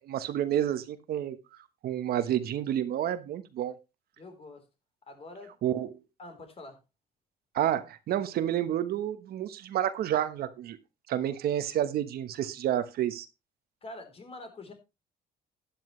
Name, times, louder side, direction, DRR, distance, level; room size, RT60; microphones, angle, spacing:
voice 1, 0.0-1.4 1.8-3.7 5.6-5.9 7.5-10.8 11.1-13.3, right 11 dB, 65° right, 11 dB, 1.2 m, -29 dB
voice 2, 4.2-4.6 5.1-5.5 6.2-6.8 13.8-14.7, left 2 dB, 35° left, 7 dB, 3.8 m, -45 dB
12.5 x 10.5 x 3.2 m, 0.26 s
cardioid pair, 110°, 17 cm